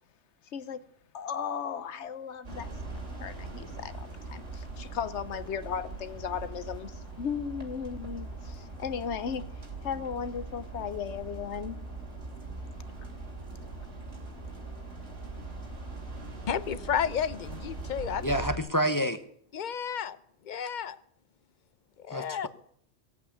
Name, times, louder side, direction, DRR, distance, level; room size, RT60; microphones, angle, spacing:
voice 1, 0.5-0.8 1.1-11.8, left 7 dB, 70° left, 1.1 m, -36 dB
sound 1, 2.4-18.6, right 3 dB, 70° right, 3.1 m, -41 dB
voice 2, 16.5-18.3 19.5-20.2 20.4-21.0 22.0-22.5, left 8 dB, 45° left, 0.7 m, -32 dB
voice 3, 18.2-19.2 22.1-22.5, equal, 20° left, 0.8 m, -28 dB
19.0 x 8.3 x 8.4 m
omnidirectional pair, 1.2 m